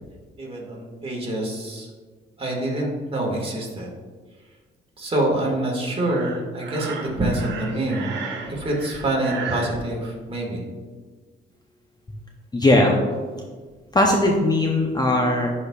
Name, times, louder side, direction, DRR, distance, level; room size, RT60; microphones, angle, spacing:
voice 1, 0.4-1.9 2.4-3.9 5.0-8.1 8.5-10.6, right 1 dB, 30° right, -1 dB, 1.8 m, -26 dB
Breathing, 6.1-9.8, right 5 dB, 65° right, 1.0 m, -34 dB
voice 2, 12.5-13.0 13.9-15.5, left 1 dB, 20° left, 0 dB, 0.7 m, -18 dB
10.5 x 4.2 x 2.4 m, 1.5 s
cardioid pair, 90°, 20 cm